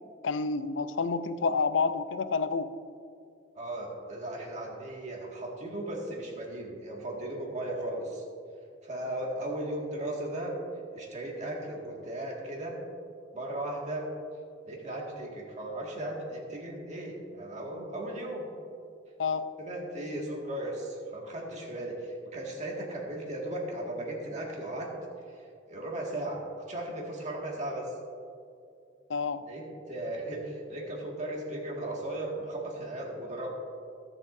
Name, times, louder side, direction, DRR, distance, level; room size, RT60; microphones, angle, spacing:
voice 1, 0.2-2.7 19.2-19.5 29.1-29.4, left 4 dB, 80° left, 12 dB, 0.5 m, -29 dB
voice 2, 3.6-8.2 8.8-10.6 10.9-12.8 13.3-14.1 14.7-18.5 19.6-24.9 25.3-26.4 26.7-27.9 29.5-33.5, right 1 dB, 40° right, -2 dB, 2.0 m, -36 dB
21.5 x 7.4 x 2.7 m, 2.4 s
head